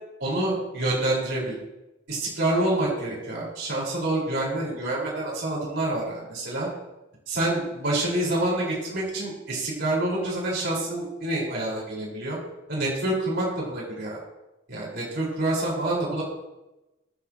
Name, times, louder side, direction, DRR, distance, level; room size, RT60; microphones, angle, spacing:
voice 1, 0.2-1.5 2.1-6.7 7.3-12.4 12.7-14.2 14.7-16.2, right 1 dB, 60° right, -5 dB, 5.3 m, -27 dB
23.0 x 8.1 x 3.1 m, 0.99 s
head